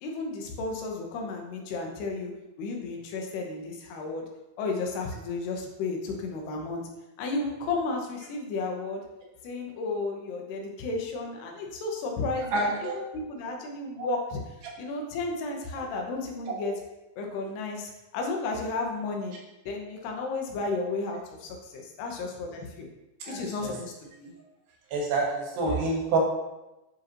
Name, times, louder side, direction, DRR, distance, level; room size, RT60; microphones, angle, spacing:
voice 1, 0.0-2.3 2.6-4.3 4.6-6.9 7.2-9.0 9.4-14.4 14.8-16.7 17.2-19.4 19.7-22.9 23.3-24.3, left 3 dB, 85° left, 1 dB, 3.1 m, -33 dB
voice 2, 12.5-13.0 14.0-14.1 23.3-23.4 24.9-26.2, right 3 dB, 90° right, -2 dB, 3.5 m, -27 dB
10.0 x 5.0 x 3.0 m, 0.98 s
omnidirectional pair, 4.6 m